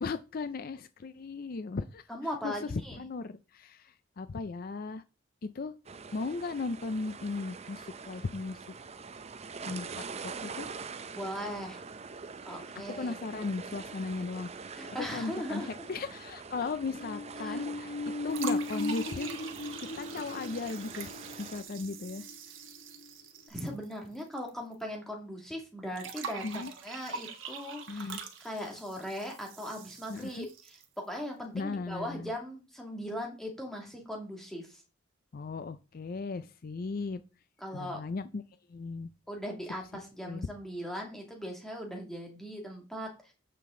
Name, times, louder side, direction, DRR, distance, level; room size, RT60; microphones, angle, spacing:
voice 1, 0.0-2.0 2.4-5.0 5.4-5.7 6.1-8.6 9.7-10.7 12.7-17.9 18.2-19.3 19.8-21.1 21.4-22.3 26.4-26.7 27.9-28.2 30.1-30.5 31.5-32.3 35.3-37.2 37.7-38.4 38.7-39.1 40.2-40.5, left 4 dB, 50° left, 12 dB, 0.4 m, -37 dB
voice 2, 2.1-3.0 11.1-11.8 12.5-13.1 14.7-15.7 17.4-17.6 23.5-30.5 31.1-34.8 37.6-38.0 39.3-43.3, equal, ahead, 1 dB, 2.2 m, -39 dB
sound 1, 5.8-21.6, right 5 dB, 35° right, 0.6 m, -44 dB
sound 2, 16.8-23.1 23.5-23.6, left 2 dB, 75° left, 1.1 m, -37 dB
sound 3, 18.3-24.5 24.7-24.8 26.0-31.0, right 6 dB, 75° right, 1.4 m, -44 dB
9.1 x 5.9 x 3.7 m, 0.32 s
head